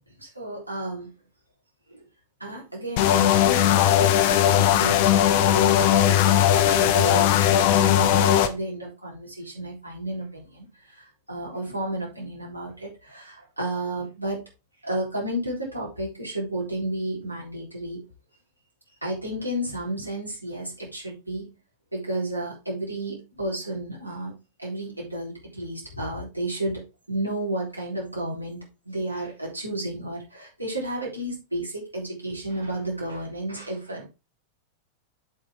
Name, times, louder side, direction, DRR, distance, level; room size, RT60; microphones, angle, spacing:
voice 1, 0.2-1.1 1.9-2.0 2.4-14.4 14.8-18.0 19.0-21.5 21.9-34.1, right 1 dB, 85° right, -4 dB, 3.8 m, -32 dB
sound 1, 3.0-8.5, left 11 dB, 50° left, 1.0 m, -19 dB
7.9 x 7.0 x 3.6 m, 0.27 s
figure-of-eight pair, 90°, 0 cm